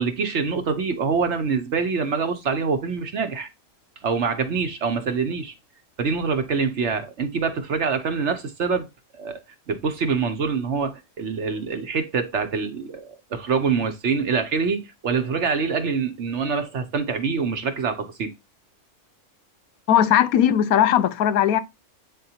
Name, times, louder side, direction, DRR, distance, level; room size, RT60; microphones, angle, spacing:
voice 1, 0.0-3.5 4.0-5.5 6.0-8.9 9.2-9.4 9.7-18.3, right 5 dB, 55° right, 1.1 m, -25 dB
voice 2, 19.9-21.6, left 10 dB, 80° left, 1.1 m, -18 dB
8.5 x 3.9 x 2.8 m
omnidirectional pair, 1.5 m